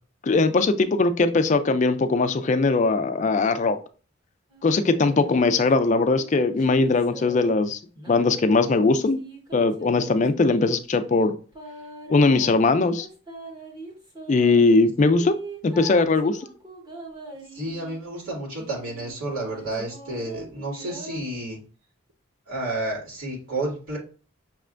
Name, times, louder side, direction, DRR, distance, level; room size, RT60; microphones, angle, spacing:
voice 1, 0.3-3.8 4.6-7.8 8.1-9.2 9.5-11.3 12.1-13.1 14.3-15.4 15.6-16.5, left 3 dB, 35° left, 9 dB, 0.3 m, -20 dB
sound 1, 4.5-7.5 7.9-10.7 11.5-14.5 15.1-18.0 18.6-21.2, right 2 dB, 20° right, 1.0 m, -42 dB
voice 2, 17.5-21.6 22.5-24.0, right 2 dB, 85° right, -6 dB, 2.4 m, -31 dB
5.9 x 3.3 x 2.5 m, 0.38 s
head